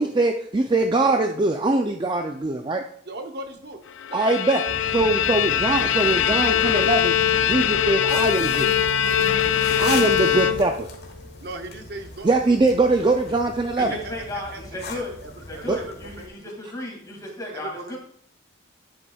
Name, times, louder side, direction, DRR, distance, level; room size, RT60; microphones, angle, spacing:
voice 1, 0.0-2.8 4.1-4.7 4.9-8.7 9.8-10.9 12.2-14.0 15.6-15.8, right 2 dB, 25° right, 5 dB, 0.4 m, -22 dB
voice 2, 3.1-3.8 4.1-4.8 9.0-9.2 10.0-10.3 11.4-12.3 13.8-15.9 17.5-17.9, right 2 dB, 55° right, 5 dB, 0.8 m, -38 dB
Bowed string instrument, 4.0-11.0, left 10 dB, 75° left, 0.4 m, -22 dB
sound 1, 4.7-10.6, equal, 85° right, 1.5 m, -35 dB
sound 2, 8.0-16.3, left 4 dB, 55° left, 1.3 m, -40 dB
voice 3, 13.8-15.1 15.5-18.0, left 1 dB, 20° left, -1 dB, 2.2 m, -34 dB
9.6 x 7.9 x 2.3 m, 0.65 s
head